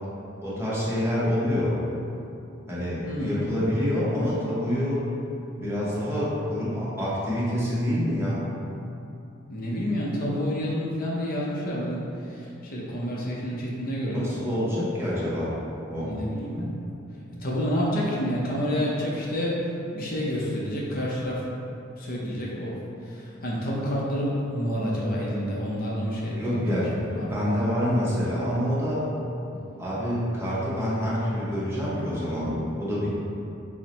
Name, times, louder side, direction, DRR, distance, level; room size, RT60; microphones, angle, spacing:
voice 1, 0.4-1.7 2.7-5.0 5.6-8.4 14.1-15.5 15.9-16.1 26.4-29.0 29.8-33.1, equal, 15° right, -9 dB, 0.8 m, -27 dB
voice 2, 3.0-3.5 9.5-14.3 16.0-16.7 17.4-19.6 19.9-21.4 22.0-22.7 23.0-27.5 29.5-29.7, equal, 45° left, -5 dB, 0.6 m, -29 dB
4.4 x 2.1 x 4.0 m, 2.7 s
head